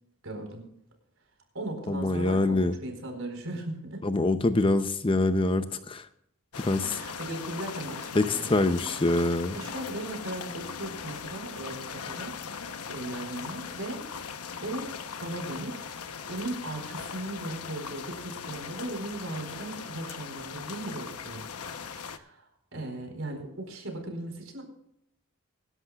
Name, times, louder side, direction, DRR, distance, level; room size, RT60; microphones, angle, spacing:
voice 1, 0.2-0.7 1.5-4.0 6.8-8.6 9.5-12.3 12.9-15.9 16.3-21.4 21.9-24.6, right 1 dB, 65° right, 4 dB, 4.3 m, -38 dB
voice 2, 1.9-2.7 4.0-6.1 6.6-7.0 8.1-9.6, left 2 dB, 25° left, 10 dB, 0.6 m, -25 dB
sound 1, 6.5-22.2, left 6 dB, 85° left, 0.9 m, -39 dB
24.5 x 11.5 x 2.4 m, 0.75 s
head